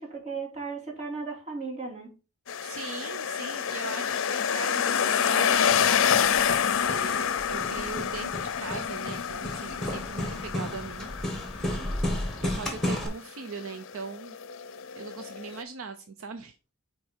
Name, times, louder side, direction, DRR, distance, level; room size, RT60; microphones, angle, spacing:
voice 1, 0.0-2.1, right 4 dB, 30° right, 2.8 m, -36 dB
sound 1, 2.5-15.6, left 8 dB, 60° left, 0.6 m, -28 dB
voice 2, 2.6-11.8 12.4-14.4 15.0-16.6, right 5 dB, 65° right, 0.6 m, -40 dB
Hammer, 5.5-13.1, left 1 dB, ahead, 1.7 m, -34 dB
6.4 x 4.5 x 4.4 m
head